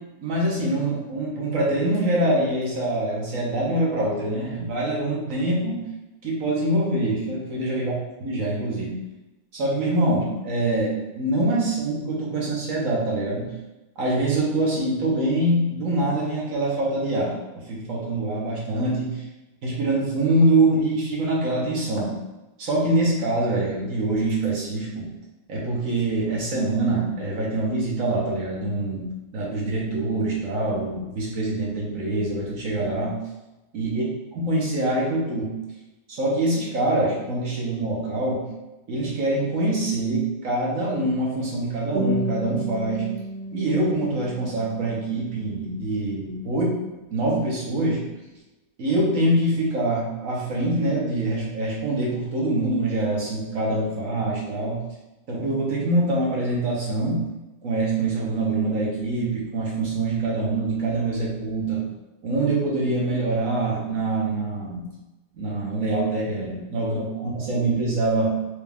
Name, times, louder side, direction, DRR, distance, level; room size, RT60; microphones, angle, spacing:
voice 1, 0.2-5.8 6.2-7.9 8.2-9.0 9.5-13.5 14.0-17.3 17.7-19.2 19.6-22.1 22.6-25.1 25.5-29.1 29.3-33.2 33.7-34.0 34.3-35.5 36.1-38.4 38.9-43.1 43.5-46.8 47.1-48.0 48.8-54.8 55.3-57.3 57.6-61.8 62.2-64.9 65.3-68.3, right 2 dB, 60° right, -4 dB, 1.4 m, -24 dB
sound 1, 41.9-46.9, right 1 dB, 45° right, 1.0 m, -33 dB
4.7 x 2.5 x 3.5 m, 1.0 s
omnidirectional pair, 1.6 m